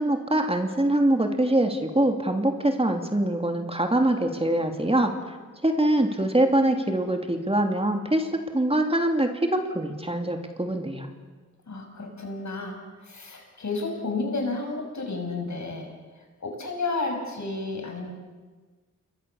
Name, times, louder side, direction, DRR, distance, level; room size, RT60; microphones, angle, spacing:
voice 1, 0.0-5.1 5.6-11.1, right 1 dB, 20° right, 4 dB, 2.9 m, -24 dB
voice 2, 11.7-18.1, left 3 dB, 65° left, 3 dB, 6.4 m, -32 dB
29.0 x 22.5 x 7.2 m, 1.4 s
wide cardioid pair, 80°, 31 cm